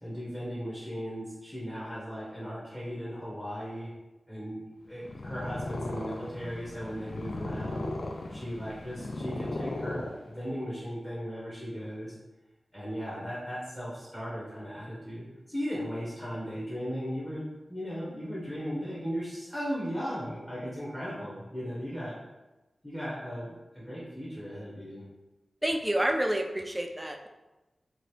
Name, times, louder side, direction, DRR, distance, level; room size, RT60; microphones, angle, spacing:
voice 1, 0.0-3.9 4.3-7.9 8.3-12.1 12.7-22.2 22.8-25.0, equal, 10° left, -8 dB, 0.9 m, -37 dB
Purr, 4.9-10.6, left 2 dB, 70° left, 0.3 m, -37 dB
voice 2, 25.6-27.3, right 1 dB, 15° right, 4 dB, 0.3 m, -29 dB
2.8 x 2.5 x 3.2 m, 1.1 s
wide cardioid pair, 85°, 0 cm